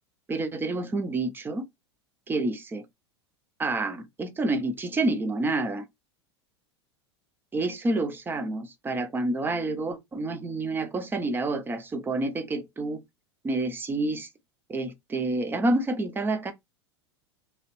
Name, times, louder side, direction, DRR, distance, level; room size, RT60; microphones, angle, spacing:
voice 1, 0.3-1.6 2.3-2.8 3.6-5.8 7.5-13.0 13.4-14.3 14.7-16.5, right 2 dB, 15° right, 0.6 m, -28 dB
2.9 x 2.4 x 3.1 m
figure-of-eight pair, 85°, 15 cm